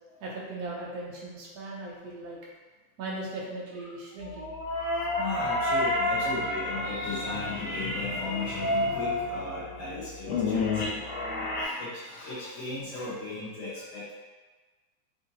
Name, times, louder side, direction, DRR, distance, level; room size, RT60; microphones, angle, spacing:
voice 1, 0.2-2.4 3.0-4.5, right 2 dB, 60° right, -4 dB, 1.1 m, -38 dB
sound 1, 4.2-11.7, left 2 dB, 85° left, 1.5 m, -30 dB
voice 2, 4.6-14.1, left 3 dB, 50° left, -12 dB, 1.0 m, -37 dB
3.5 x 2.6 x 2.8 m, 1.3 s
omnidirectional pair, 2.2 m